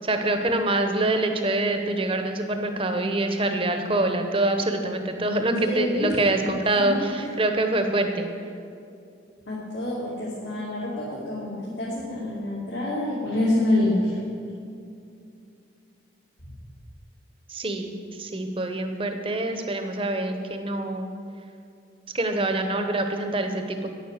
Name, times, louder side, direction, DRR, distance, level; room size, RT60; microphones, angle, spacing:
voice 1, 0.0-8.3 17.5-21.1 22.1-23.9, right 2 dB, 30° right, 6 dB, 0.9 m, -25 dB
voice 2, 5.6-6.1 6.4-6.5 6.7-7.0 9.5-14.2, left 1 dB, 70° left, -8 dB, 2.5 m, -27 dB
10.0 x 9.4 x 6.6 m, 2.5 s
head